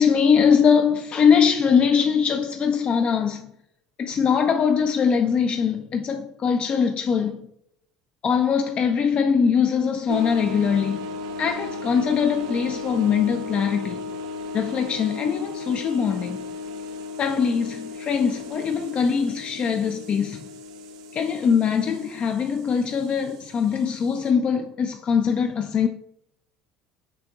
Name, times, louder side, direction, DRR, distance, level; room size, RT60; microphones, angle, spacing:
voice 1, 0.0-3.5 4.0-7.5 8.2-11.0 11.4-14.1 14.5-16.5 17.2-20.5 21.1-25.9, left 6 dB, 40° left, 0.3 m, -22 dB
sound 1, 10.1-24.3, left 2 dB, 75° right, 0.4 m, -36 dB
5.9 x 2.7 x 2.3 m
hypercardioid pair, 70°, 3 cm